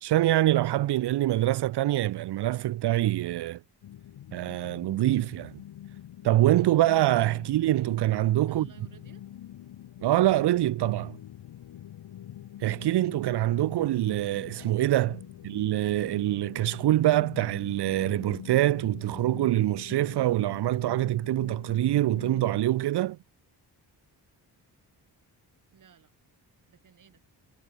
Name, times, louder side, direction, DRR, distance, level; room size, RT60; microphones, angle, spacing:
voice 1, 0.0-3.6 4.3-5.5 6.2-8.7 10.0-11.2 12.6-23.2, right 14 dB, 70° right, 0.7 m, -25 dB
sound 1, 3.8-22.6, left 12 dB, 85° left, 2.8 m, -45 dB
voice 2, 8.4-9.3 15.2-15.5 25.7-26.1 26.7-27.2, right 8 dB, 50° right, 5.3 m, -57 dB
wide cardioid pair, 165°, 41 cm